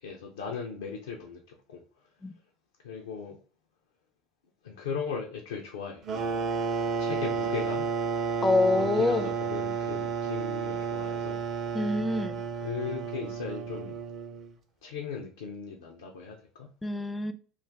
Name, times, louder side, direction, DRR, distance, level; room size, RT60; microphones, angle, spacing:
voice 1, 0.0-1.8 2.8-3.4 4.6-6.4 7.0-7.9 8.8-11.4 12.6-14.0 14.8-16.7, left 6 dB, 85° left, 0.4 m, -37 dB
sound 1, 6.0-14.5, right 5 dB, 45° right, 0.6 m, -31 dB
voice 2, 8.4-9.3 11.7-12.4 16.8-17.3, left 2 dB, 15° left, 0.4 m, -26 dB
2.5 x 2.4 x 3.4 m
hypercardioid pair, 75°, 0 cm